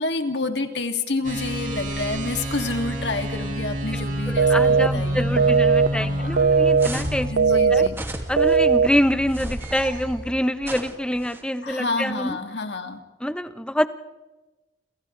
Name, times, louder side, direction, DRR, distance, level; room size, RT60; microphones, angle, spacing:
voice 1, 0.0-5.5 5.9-6.5 7.3-8.0 11.6-13.0, left 3 dB, 70° left, 5 dB, 2.6 m, -29 dB
sound 1, 1.2-10.3, right 1 dB, 50° right, 5.1 m, -29 dB
voice 2, 3.9-7.8 8.3-12.4 13.2-13.9, equal, 5° left, 10 dB, 1.0 m, -26 dB
sound 2, 4.4-4.9 5.4-5.9 6.4-6.9 7.4-7.9 8.4-8.9, right 5 dB, 85° right, 0.6 m, -17 dB
sound 3, 6.8-7.3 7.9-8.6 9.3-9.9 10.6-11.4, right 1 dB, 15° right, 2.5 m, -34 dB
29.5 x 27.5 x 3.4 m, 1.1 s
head